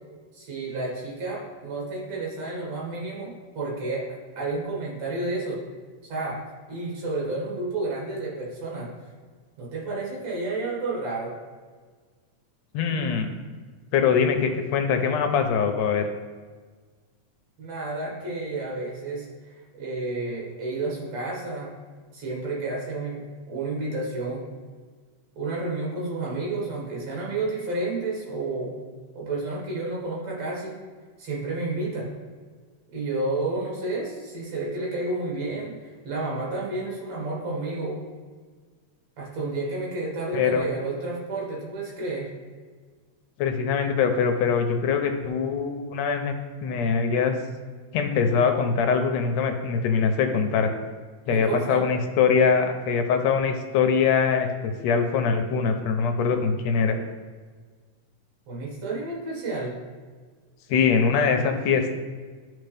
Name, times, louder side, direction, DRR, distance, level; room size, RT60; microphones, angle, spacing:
voice 1, 0.3-4.1 4.4-5.6 6.0-6.4 6.7-8.9 9.6-11.3 17.6-21.7 22.1-23.2 23.5-24.4 25.4-28.7 29.1-30.8 31.2-32.1 32.9-38.0 39.2-42.3 51.3-51.9 58.5-59.7, right 2 dB, 65° right, -4 dB, 3.1 m, -31 dB
voice 2, 12.7-13.3 13.9-16.1 40.3-40.7 43.4-46.3 46.6-47.3 47.9-50.7 51.3-57.0 60.7-61.9, left 6 dB, 75° left, 6 dB, 1.8 m, -23 dB
12.0 x 4.0 x 3.4 m, 1.5 s
omnidirectional pair, 3.3 m